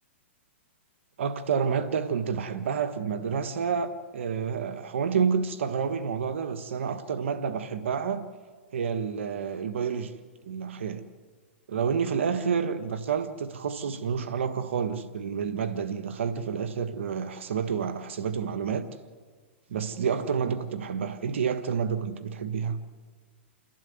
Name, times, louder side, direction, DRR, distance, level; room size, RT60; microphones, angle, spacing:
voice 1, 1.2-8.2 8.7-10.1 10.5-11.0 11.7-18.9 19.7-22.8, right 6 dB, 75° right, 1.5 m, -29 dB
29.0 x 12.0 x 9.5 m
hypercardioid pair, 130°, 7 cm